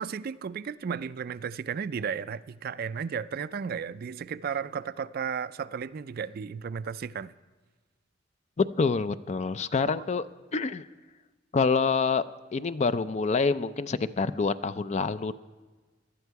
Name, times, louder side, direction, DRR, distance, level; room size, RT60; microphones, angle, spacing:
voice 1, 0.0-7.3, right 6 dB, 50° right, 15 dB, 0.4 m, -34 dB
voice 2, 8.6-10.2 10.5-10.9 11.5-12.2 12.5-15.3, left 4 dB, 35° left, 14 dB, 0.4 m, -26 dB
18.0 x 12.0 x 4.7 m, 1.3 s
head